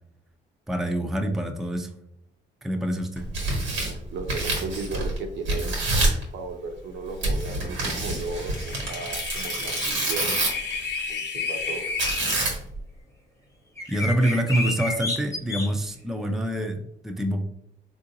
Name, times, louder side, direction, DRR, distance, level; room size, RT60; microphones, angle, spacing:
voice 1, 0.7-1.9 2.6-3.3 13.9-17.4, right 1 dB, ahead, 4 dB, 0.4 m, -26 dB
Tearing, 3.2-5.2 5.5-6.2 7.2-10.7 12.0-12.8, right 2 dB, 85° right, 1.2 m, -27 dB
voice 2, 3.8-5.8 6.3-10.4 11.1-11.9, right 3 dB, 70° right, 4 dB, 0.6 m, -35 dB
sound 1, 8.2-12.4, left 5 dB, 60° left, 0.7 m, -32 dB
sound 2, 13.8-15.7, left 2 dB, 15° left, 0.8 m, -29 dB
3.6 x 2.6 x 2.6 m, 0.76 s
cardioid pair, 90°, 20 cm